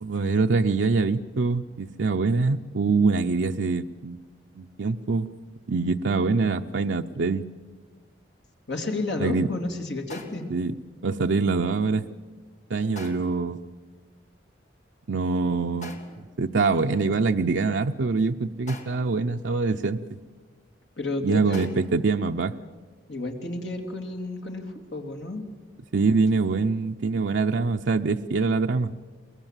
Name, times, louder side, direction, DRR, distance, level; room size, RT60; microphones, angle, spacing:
voice 1, 0.0-4.2 4.6-5.3 5.7-7.4 9.2-9.5 10.5-10.7 11.0-12.0 12.7-13.6 15.1-16.0 16.4-20.0 21.2-22.5 25.9-28.9, right 4 dB, 80° right, 4 dB, 0.6 m, -24 dB
voice 2, 8.7-10.5 21.0-21.7 23.1-25.4, left 2 dB, 70° left, 3 dB, 2.7 m, -31 dB
sound 1, 10.1-10.6 13.0-13.5 15.8-16.4 18.7-19.2 21.5-22.0, left 2 dB, 40° left, 2.0 m, -43 dB
23.0 x 21.0 x 7.4 m, 1.4 s
head